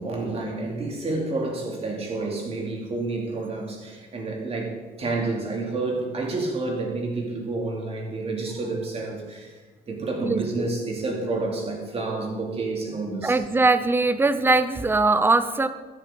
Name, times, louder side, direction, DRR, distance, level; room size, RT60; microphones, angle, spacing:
voice 1, 0.0-9.6 9.9-13.4, right 3 dB, 35° right, 0 dB, 2.8 m, -29 dB
voice 2, 10.2-10.7 13.2-15.7, right 3 dB, 15° right, 12 dB, 0.6 m, -21 dB
13.0 x 10.0 x 3.9 m, 1.3 s
cardioid pair, 110°, 17 cm